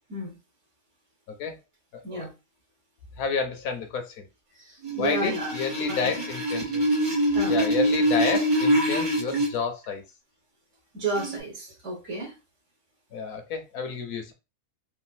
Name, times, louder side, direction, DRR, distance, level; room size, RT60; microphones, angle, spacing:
voice 1, 3.2-4.2 5.0-6.8 7.5-10.0 13.1-14.3, left 5 dB, 85° left, 7 dB, 1.1 m, -30 dB
voice 2, 4.5-5.5 5.9-6.3 7.3-7.6 10.9-12.4, right 2 dB, 60° right, -3 dB, 1.3 m, -32 dB
sound 1, 4.8-9.5 11.2-11.4, right 1 dB, 45° right, 0.8 m, -24 dB
3.3 x 2.5 x 2.2 m, 0.27 s
omnidirectional pair, 1.4 m